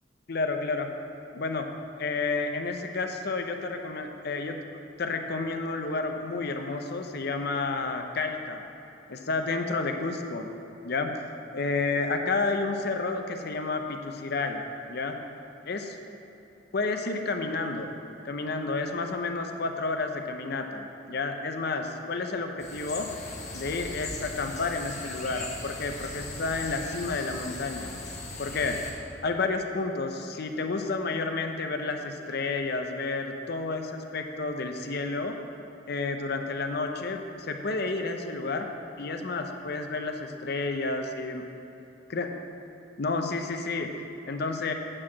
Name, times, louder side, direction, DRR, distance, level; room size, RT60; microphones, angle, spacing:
voice 1, 0.3-0.9 1.3-1.7 2.0-4.6 5.0-8.6 9.1-10.5 10.8-11.1 11.5-15.1 15.7-16.0 16.7-17.9 18.2-23.1 23.5-28.0 28.4-35.4 35.9-38.7 39.0-41.4 42.1-42.3 43.0-44.7, left 3 dB, 60° left, 5 dB, 0.7 m, -30 dB
sound 1, 22.6-28.9, left 2 dB, 40° left, 1.5 m, -39 dB
8.6 x 4.8 x 7.3 m, 2.9 s
head